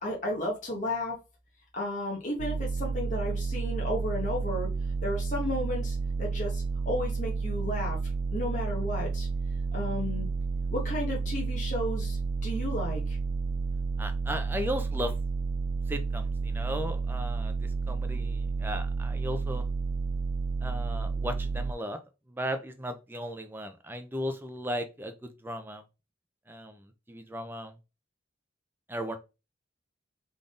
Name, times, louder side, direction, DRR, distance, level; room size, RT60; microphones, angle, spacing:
voice 1, 0.0-1.2 1.7-4.7 5.0-8.0 8.3-9.3 9.7-10.3 10.7-13.2, left 1 dB, 35° left, -2 dB, 1.3 m, -33 dB
sound 1, 2.4-21.7, right 4 dB, 80° right, 0.3 m, -31 dB
voice 2, 14.0-15.1 15.9-19.6 20.6-22.0 22.3-25.8 26.5-27.7 28.9-29.2, equal, 10° right, 7 dB, 0.5 m, -36 dB
3.9 x 3.6 x 3.8 m, 0.28 s
head